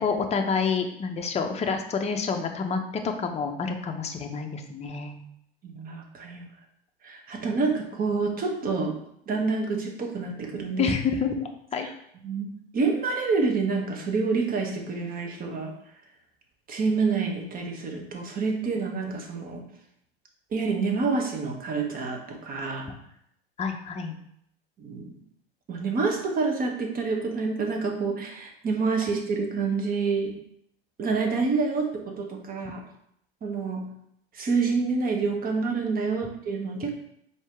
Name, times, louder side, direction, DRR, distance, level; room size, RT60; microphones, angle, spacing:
voice 1, 0.0-5.2 10.8-11.9 23.6-24.2, left 5 dB, 20° left, 5 dB, 0.6 m, -28 dB
voice 2, 5.6-6.5 7.0-9.0 9.3-10.9 11.8-11.9 12.2-15.7 16.7-19.6 20.5-22.9 24.8-25.1 25.7-30.3 31.0-32.8 33.4-33.9 34.3-36.9, right 4 dB, 30° right, 2 dB, 1.0 m, -27 dB
4.4 x 2.8 x 3.4 m, 0.73 s
hypercardioid pair, 85°, 29 cm